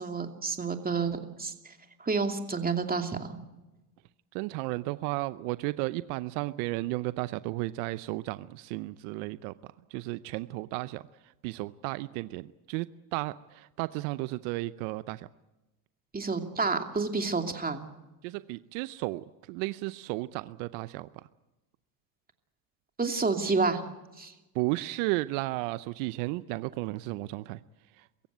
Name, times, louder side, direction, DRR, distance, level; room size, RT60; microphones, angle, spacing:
voice 1, 0.0-1.5 2.0-3.3 16.1-17.9 23.0-23.8 24.2-24.3, right 4 dB, 20° right, 5 dB, 2.7 m, -29 dB
voice 2, 4.3-9.5 9.9-11.0 11.4-12.9 13.1-15.3 18.2-21.1 24.5-27.6 28.0-28.1, right 20 dB, 75° right, 15 dB, 0.8 m, -33 dB
24.0 x 15.5 x 9.4 m, 1.0 s
supercardioid pair, 90°, 47 cm